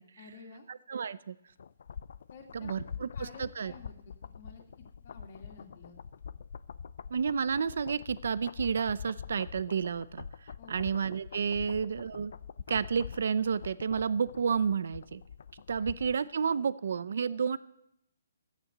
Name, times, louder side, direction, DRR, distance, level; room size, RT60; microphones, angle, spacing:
voice 1, 0.2-0.7 2.3-2.8 3.1-4.6 5.0-6.0 10.6-10.9 11.6-11.8 15.8-15.9, left 4 dB, 45° left, 0 dB, 2.4 m, -52 dB
voice 2, 0.7-1.4 2.5-3.7 7.1-10.3 10.7-12.3 12.7-15.2 15.7-17.6, right 6 dB, 65° right, 17 dB, 0.6 m, -31 dB
sound 1, 1.6-16.3 16.6-16.7, left 7 dB, 65° left, 0.5 m, -45 dB
14.0 x 9.2 x 7.9 m, 0.81 s
hypercardioid pair, 160°, 0 cm